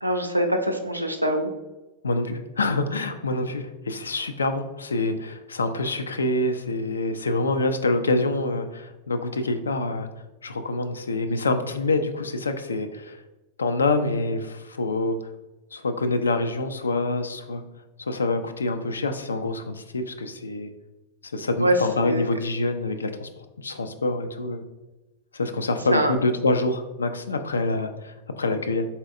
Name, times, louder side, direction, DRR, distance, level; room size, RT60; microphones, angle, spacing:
voice 1, 0.0-1.5 21.6-21.8 22.0-22.3 25.9-26.1, right 1 dB, 90° right, 4 dB, 0.5 m, -23 dB
voice 2, 2.0-10.1 10.4-13.2 13.6-15.2 15.7-17.6 18.0-20.7 21.3-23.3 23.6-24.6 25.3-28.9, left 2 dB, 75° left, 8 dB, 0.4 m, -26 dB
4.2 x 3.9 x 2.5 m, 1.1 s
figure-of-eight pair, 90°, 0 cm